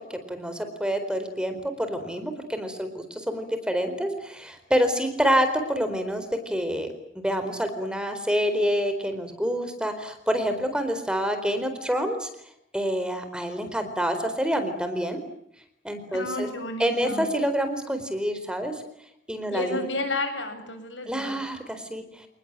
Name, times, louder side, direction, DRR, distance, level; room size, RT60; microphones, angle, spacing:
voice 1, 0.1-6.9 7.1-12.3 12.7-15.2 15.8-16.5 16.8-18.7 19.3-19.8 21.1-22.3, equal, 5° right, 8 dB, 4.2 m, -27 dB
voice 2, 16.1-17.3 19.5-21.4, left 2 dB, 90° left, 7 dB, 7.8 m, -31 dB
30.0 x 20.0 x 9.0 m, 0.74 s
head